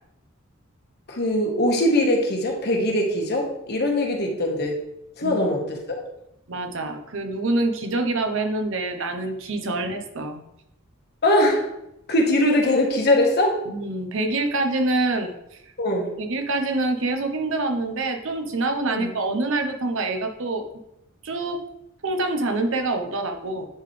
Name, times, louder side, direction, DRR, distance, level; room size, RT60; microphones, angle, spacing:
voice 1, 1.1-4.8 5.2-6.0 9.7-9.8 11.2-11.7 12.1-13.6 15.8-16.1 18.9-19.1, left 1 dB, 50° left, 0 dB, 1.4 m, -21 dB
voice 2, 6.5-10.4 13.7-15.6 16.2-20.7 21.2-21.6 22.0-23.7, right 2 dB, 65° right, 5 dB, 0.9 m, -26 dB
10.5 x 3.9 x 3.3 m, 0.83 s
head